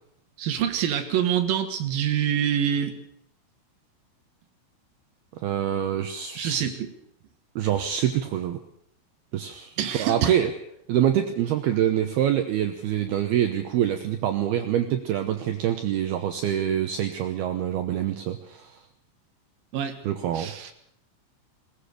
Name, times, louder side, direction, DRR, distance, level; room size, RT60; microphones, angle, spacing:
voice 1, 0.4-3.0 6.4-6.9 9.8-10.3 19.7-20.0 20.3-20.7, right 9 dB, 60° right, 6 dB, 2.6 m, -26 dB
voice 2, 5.4-6.6 7.6-8.6 9.3-10.5 10.9-18.8 20.0-20.5, right 10 dB, 80° right, 6 dB, 2.3 m, -25 dB
20.5 x 19.0 x 6.7 m, 0.72 s
omnidirectional pair, 5.9 m